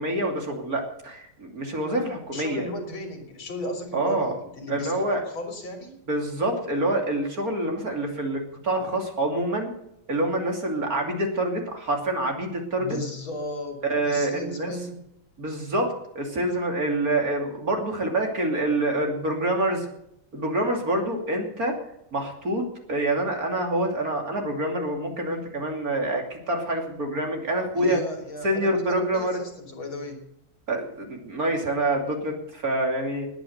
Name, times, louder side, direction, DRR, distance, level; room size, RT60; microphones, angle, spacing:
voice 1, 0.0-2.7 3.9-4.4 4.7-5.2 6.1-9.7 10.1-13.0 13.8-14.7 15.4-19.9 20.3-21.7 22.1-22.6 22.9-28.0 28.4-29.4 30.7-33.3, right 1 dB, 45° right, 2 dB, 3.2 m, -26 dB
voice 2, 2.3-5.9 12.8-15.0 27.7-30.2, left 2 dB, 75° left, 4 dB, 3.9 m, -35 dB
19.5 x 9.3 x 6.6 m, 0.77 s
omnidirectional pair, 2.3 m